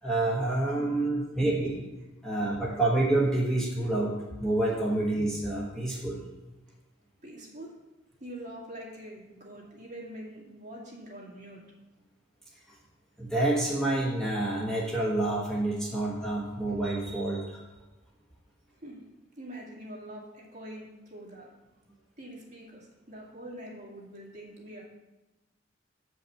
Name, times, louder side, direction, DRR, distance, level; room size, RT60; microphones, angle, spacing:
voice 1, 0.0-1.9 2.2-6.2 13.2-17.6, right 2 dB, 5° left, -5 dB, 1.2 m, -28 dB
voice 2, 7.2-7.7 8.2-11.6 18.8-19.0 19.4-21.5 22.2-24.8, right 1 dB, 40° right, -3 dB, 2.1 m, -44 dB
7.8 x 5.4 x 5.8 m, 1.0 s
head